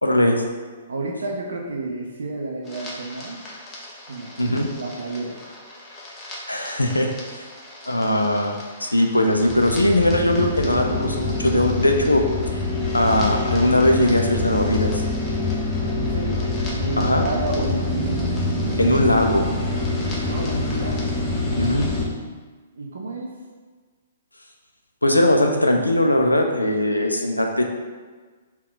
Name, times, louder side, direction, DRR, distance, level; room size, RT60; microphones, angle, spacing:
voice 1, 0.0-0.4 4.4-4.7 6.5-7.5 7.9-12.6 12.9-15.0 17.0-17.2 18.8-19.5 21.6-21.9 25.0-27.6, left 1 dB, 90° left, 3 dB, 0.3 m, -20 dB
voice 2, 0.9-3.4 4.1-5.4 15.9-18.3 20.3-21.1 22.7-23.3, right 3 dB, 70° right, -1 dB, 0.4 m, -30 dB
sound 1, 2.7-22.0, left 2 dB, 20° left, 0.7 m, -26 dB
3.6 x 2.3 x 3.8 m, 1.4 s
figure-of-eight pair, 120°, 0 cm